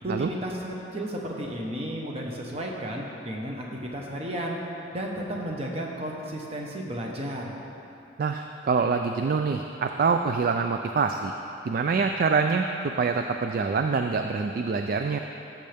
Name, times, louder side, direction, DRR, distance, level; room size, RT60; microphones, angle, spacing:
voice 1, 0.0-4.6 4.9-7.5, right 1 dB, 30° right, -1 dB, 1.1 m, -33 dB
voice 2, 8.2-11.3 11.7-15.2, right 5 dB, 45° right, 5 dB, 0.3 m, -25 dB
14.0 x 7.6 x 3.5 m, 2.9 s
head